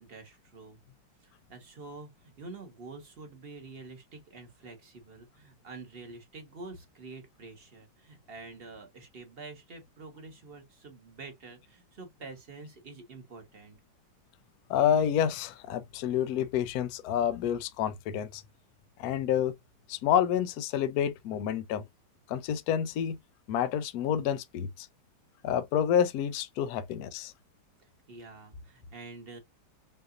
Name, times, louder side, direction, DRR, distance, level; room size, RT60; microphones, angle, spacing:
voice 1, 0.0-0.8 1.2-13.8 28.1-29.4, right 3 dB, 35° right, 1.3 m, -47 dB
voice 2, 14.7-18.4 19.0-19.5 19.9-21.8 22.3-23.2 23.5-24.9 25.4-27.3, left 9 dB, 70° left, 1.0 m, -28 dB
5.8 x 2.7 x 2.5 m
omnidirectional pair, 1.9 m